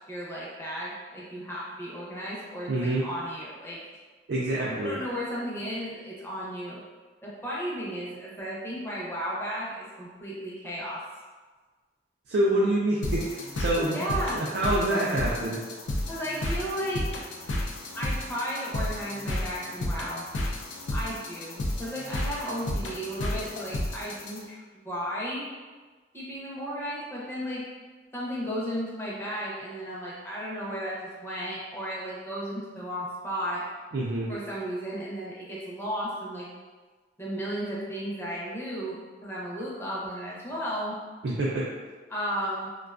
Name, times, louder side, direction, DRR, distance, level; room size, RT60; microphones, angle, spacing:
voice 1, 0.1-3.8 4.5-6.8 7.2-11.0 13.9-14.4 14.9-15.0 16.1-17.1 17.9-20.2 20.9-25.4 26.1-27.7 28.1-33.6 34.3-36.5 37.2-41.0 42.1-42.7, equal, 15° left, -6 dB, 0.5 m, -34 dB
voice 2, 2.7-3.1 4.3-5.0 12.3-14.0 14.3-15.6 33.9-34.3 41.2-41.7, right 1 dB, 65° right, -5 dB, 0.3 m, -26 dB
sound 1, 13.0-24.4, left 1 dB, 85° left, 0.4 m, -32 dB
2.5 x 2.2 x 2.3 m, 1.4 s
head